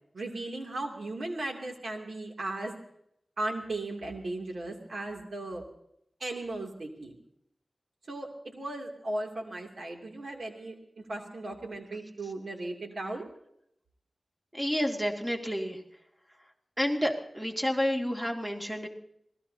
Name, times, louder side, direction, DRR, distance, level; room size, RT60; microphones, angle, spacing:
voice 1, 0.1-2.7 3.4-5.6 6.2-7.1 8.1-10.8 11.1-13.3, right 2 dB, 75° right, 2 dB, 2.8 m, -36 dB
voice 2, 14.5-15.8 16.8-18.9, equal, 10° right, 1 dB, 2.5 m, -30 dB
26.5 x 19.0 x 2.8 m, 0.74 s
wide cardioid pair, 80°, 0 cm